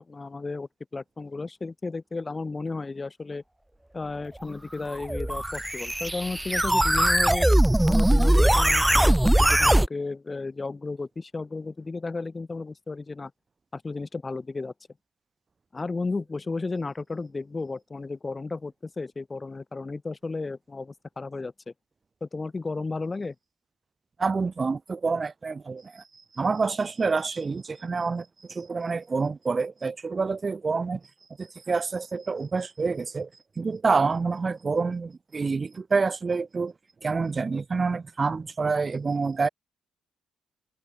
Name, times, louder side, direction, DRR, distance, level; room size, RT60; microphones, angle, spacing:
voice 1, 0.0-3.4 3.9-7.5 7.9-13.3 13.7-14.7 15.7-21.5 22.2-23.4, left 3 dB, 25° left, 1.9 m, -33 dB
sound 1, 4.9-9.9, right 1 dB, 5° right, 0.6 m, -21 dB
voice 2, 24.2-26.0 26.3-31.0 31.4-33.3 33.6-36.7 37.0-39.5, right 4 dB, 30° right, 2.0 m, -27 dB
cardioid pair, 90°, 0 cm